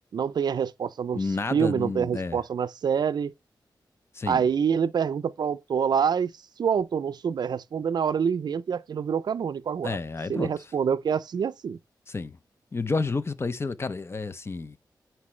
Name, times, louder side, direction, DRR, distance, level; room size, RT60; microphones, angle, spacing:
voice 1, 0.1-1.2 1.5-3.3 4.3-6.3 6.6-10.0 10.3-11.8, right 7 dB, 65° right, 0.4 m, -26 dB
voice 2, 1.1-2.4 4.1-4.4 9.8-10.5 12.1-12.4 12.7-14.8, left 3 dB, 35° left, 0.6 m, -30 dB
9.9 x 4.5 x 3.2 m
wide cardioid pair, 125°, 8 cm